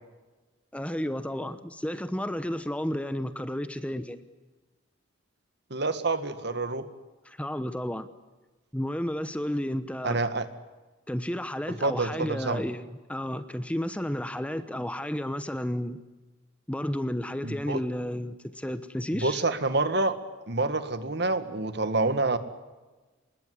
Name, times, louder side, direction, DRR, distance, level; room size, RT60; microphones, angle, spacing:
voice 1, 0.7-4.2 7.2-8.1 8.7-10.2 11.1-16.0 16.7-19.4, equal, 5° left, 11 dB, 1.0 m, -32 dB
voice 2, 5.7-6.9 10.0-10.5 11.8-12.6 17.4-17.8 19.1-20.2 20.5-22.4, right 2 dB, 55° right, 11 dB, 1.9 m, -27 dB
26.0 x 21.0 x 9.8 m, 1.2 s
head